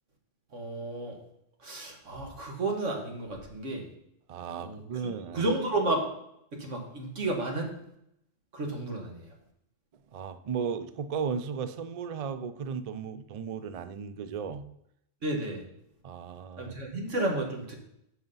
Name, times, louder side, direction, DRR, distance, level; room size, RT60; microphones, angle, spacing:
voice 1, 0.5-1.2 1.6-3.8 4.6-4.8 5.3-6.1 6.5-7.7 8.5-9.3 15.2-15.6 16.6-17.7, right 2 dB, 80° right, 2 dB, 1.9 m, -32 dB
voice 2, 4.3-5.5 10.1-14.7 16.0-16.7, right 6 dB, 55° right, 12 dB, 0.4 m, -35 dB
7.8 x 5.9 x 5.5 m, 0.77 s
omnidirectional pair, 1.3 m